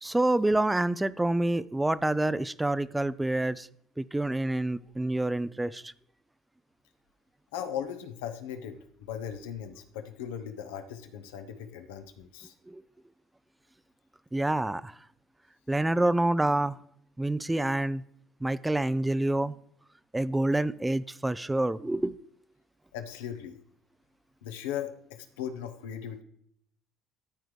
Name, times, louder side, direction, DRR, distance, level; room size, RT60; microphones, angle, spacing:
voice 1, 0.0-3.7 4.0-5.9 12.7-12.8 14.3-15.0 15.7-16.8 17.2-18.0 18.4-19.5 20.1-22.2, right 1 dB, 10° right, 17 dB, 0.4 m, -27 dB
voice 2, 7.5-12.5 22.9-23.6 24.4-26.2, left 9 dB, 85° left, 7 dB, 0.9 m, -38 dB
13.5 x 4.6 x 3.3 m, 0.70 s
supercardioid pair, 80°, 0 cm